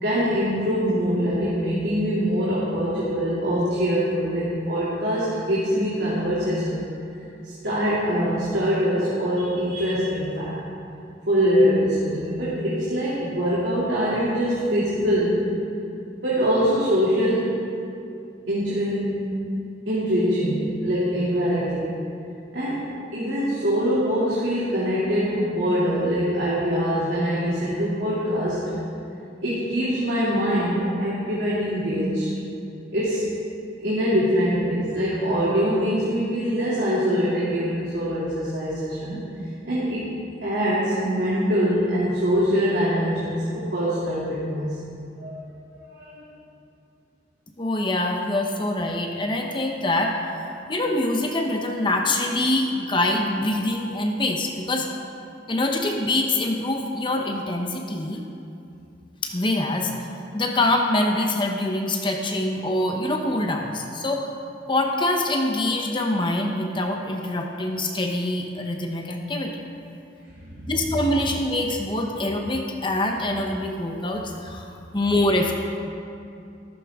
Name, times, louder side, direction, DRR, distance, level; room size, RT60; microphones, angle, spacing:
voice 1, 0.0-6.9 7.4-10.6 11.3-15.5 16.0-17.6 18.5-19.3 19.9-21.9 22.5-22.9 23.1-28.7 29.4-32.3 32.9-33.3 33.8-39.2 39.6-40.1 40.4-44.8 45.2-45.5 45.9-46.2 70.4-70.7, equal, 75° right, -9 dB, 2.8 m, -23 dB
voice 2, 47.6-50.2 50.7-54.9 55.5-58.2 59.2-64.3 64.7-69.5 70.7-75.5, left 1 dB, 25° left, 2 dB, 0.9 m, -24 dB
14.5 x 14.5 x 3.7 m, 2.6 s
head